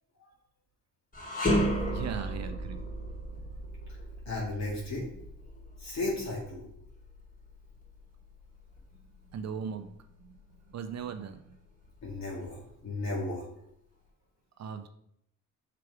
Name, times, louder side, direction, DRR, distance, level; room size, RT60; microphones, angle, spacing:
sound 1, 1.1-10.4 10.8-11.0 11.8-12.7, equal, 25° left, 2.8 m, -35 dB
voice 1, 1.9-2.9 8.9-10.4 10.7-11.5 14.6-14.9, right 7 dB, 55° right, 8 dB, 0.7 m, -39 dB
voice 2, 4.3-5.1 5.8-6.6 12.0-13.5, left 2 dB, 55° left, -3 dB, 2.2 m, -34 dB
5.9 x 4.9 x 4.8 m, 0.75 s
cardioid pair, 80°, 32 cm